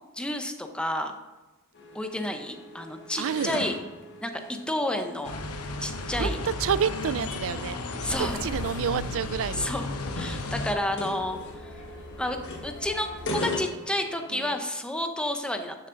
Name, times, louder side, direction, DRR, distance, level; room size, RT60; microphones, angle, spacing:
voice 1, 0.1-1.1 1.9-3.7 4.2-4.3 4.7-5.3 5.8-6.4 8.0-8.4 9.6-9.9 10.1-11.7 12.2-15.8, left 1 dB, 5° left, 5 dB, 0.9 m, -30 dB
sound 1, 1.7-14.6, left 2 dB, 55° left, 1.7 m, -39 dB
voice 2, 3.2-3.5 6.1-6.3 6.6-7.8 8.2-9.7 14.3-14.6, right 7 dB, 65° right, 17 dB, 0.4 m, -29 dB
sound 2, 5.2-10.7, left 2 dB, 85° left, 1.0 m, -34 dB
sound 3, 8.1-13.5, left 1 dB, 35° left, 2.1 m, -41 dB
12.5 x 7.3 x 3.9 m, 1.1 s
head